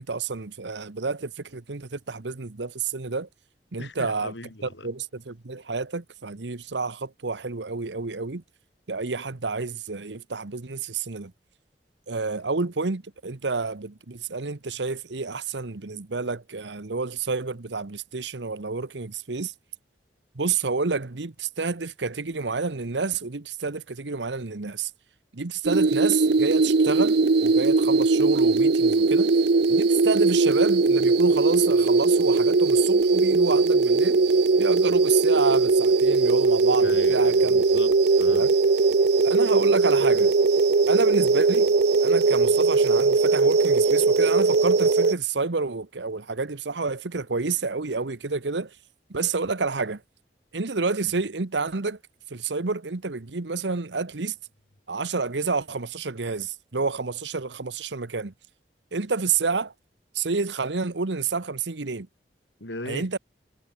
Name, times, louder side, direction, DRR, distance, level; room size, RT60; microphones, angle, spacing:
voice 1, 0.0-3.3 3.7-4.3 4.8-8.4 8.9-11.3 12.1-19.5 20.3-24.9 25.3-29.3 29.7-34.2 34.6-37.6 38.3-38.5 39.2-40.3 40.9-41.7 42.0-48.7 49.1-50.0 50.5-52.0 52.3-54.3 54.9-58.3 58.9-59.7 60.1-62.1 62.9-63.2, right 4 dB, 85° right, 1.1 m, -29 dB
voice 2, 3.8-4.9 12.3-12.4 36.8-38.5 51.1-51.2 62.6-63.1, left 2 dB, 85° left, 5.2 m, -39 dB
sound 1, 25.7-45.1, right 3 dB, 65° right, 0.7 m, -20 dB
head